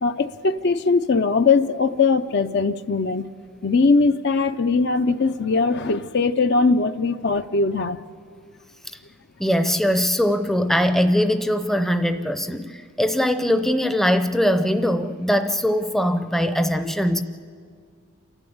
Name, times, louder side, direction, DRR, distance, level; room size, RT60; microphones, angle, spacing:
voice 1, 0.0-3.2 3.6-8.0, left 4 dB, 55° left, 11 dB, 0.5 m, -20 dB
voice 2, 9.4-17.2, equal, ahead, 9 dB, 0.6 m, -21 dB
28.5 x 11.5 x 8.5 m, 2.2 s
head